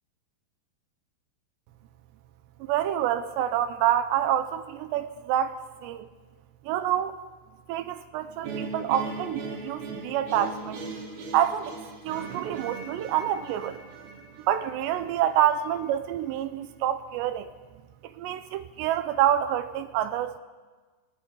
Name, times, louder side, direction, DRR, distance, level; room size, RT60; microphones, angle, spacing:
voice 1, 2.6-6.1 6.7-7.2 7.7-10.8 11.3-11.8 12.0-13.8 14.5-17.5 18.0-20.4, right 11 dB, 85° right, 9 dB, 3.1 m, -27 dB
sound 1, 8.4-15.5, right 3 dB, 60° right, 3.9 m, -39 dB
27.5 x 19.0 x 5.4 m, 1.3 s
omnidirectional pair, 4.9 m